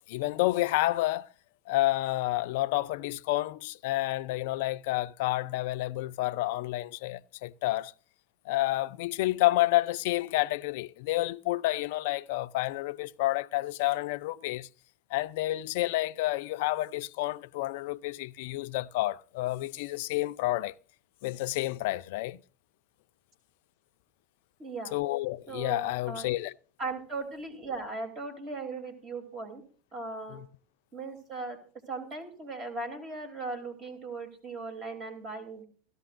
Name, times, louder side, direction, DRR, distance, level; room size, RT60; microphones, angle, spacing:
voice 1, 0.1-1.3 1.7-7.9 8.5-14.7 15.1-20.7 21.2-22.4 24.9-26.5 30.3-30.4, left 17 dB, 65° left, 0.5 m, -29 dB
voice 2, 24.6-24.9 25.5-26.3 26.8-29.6 29.9-30.4 30.9-31.6 31.9-35.6, right 3 dB, 35° right, 3.3 m, -38 dB
17.0 x 13.5 x 2.6 m
hypercardioid pair, 100°, 0 cm